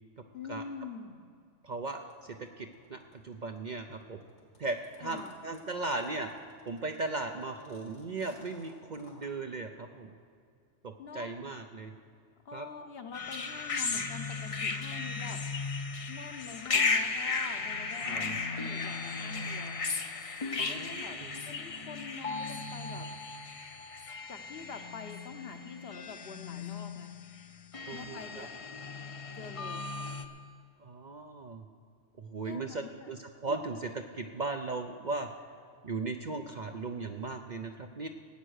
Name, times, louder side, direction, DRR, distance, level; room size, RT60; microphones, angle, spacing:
voice 1, 0.3-1.3 5.0-5.5 11.0-11.3 12.4-15.4 16.1-21.2 21.4-23.1 24.3-27.1 27.9-28.6 29.3-29.9 32.4-33.1, left 5 dB, 55° left, 6 dB, 1.0 m, -45 dB
voice 2, 1.6-4.2 4.6-6.3 6.7-10.1 10.8-11.9 12.5-12.7 18.0-18.4 20.6-21.3 27.9-28.5 30.8-31.7 32.2-35.3 35.8-38.1, right 3 dB, 45° right, 5 dB, 0.6 m, -37 dB
sound 1, 1.9-9.3, left 1 dB, 85° left, 3.1 m, -61 dB
sound 2, 13.1-30.3, left 4 dB, 35° left, 0.6 m, -35 dB
17.0 x 8.8 x 6.4 m, 2.2 s
omnidirectional pair, 1.3 m